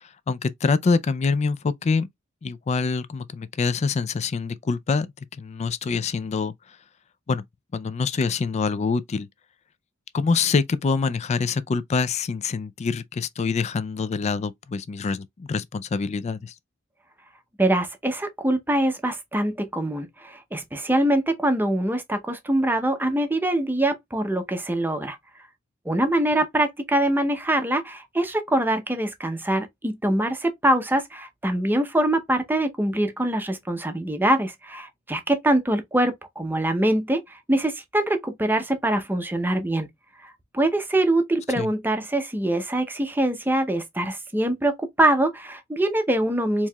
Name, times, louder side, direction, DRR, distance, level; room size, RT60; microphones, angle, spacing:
voice 1, 0.3-2.1 2.4-5.1 5.4-6.5 7.3-7.4 7.7-9.3 10.1-16.5 41.6-41.7, left 4 dB, 30° left, 0.3 m, -25 dB
voice 2, 17.6-25.2 25.9-39.9 40.2-46.7, right 1 dB, 10° right, 0.6 m, -24 dB
4.5 x 2.9 x 2.2 m
head